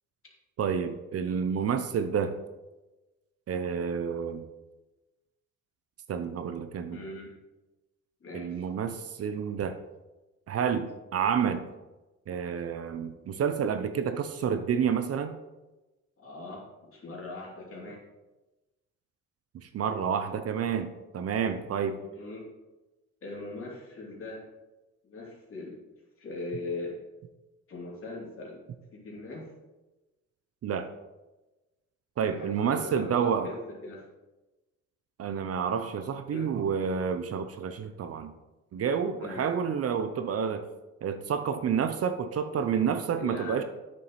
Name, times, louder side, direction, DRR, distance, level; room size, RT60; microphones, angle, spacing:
voice 1, 0.6-2.3 3.5-4.5 6.1-7.0 8.3-9.8 10.5-11.7 12.3-15.4 19.5-22.0 30.6-30.9 32.2-33.5 35.2-38.3 38.7-40.7 41.0-43.6, right 7 dB, 50° right, 9 dB, 0.6 m, -29 dB
voice 2, 6.9-7.3 8.2-8.7 16.2-18.0 21.9-22.5 23.2-24.4 25.0-25.8 26.2-27.0 27.7-28.6 28.9-29.5 32.2-34.1 36.3-36.5 39.1-39.5 43.2-43.6, left 2 dB, 45° left, -3 dB, 2.9 m, -40 dB
8.8 x 7.0 x 3.1 m, 1.1 s
cardioid pair, 90°, 30 cm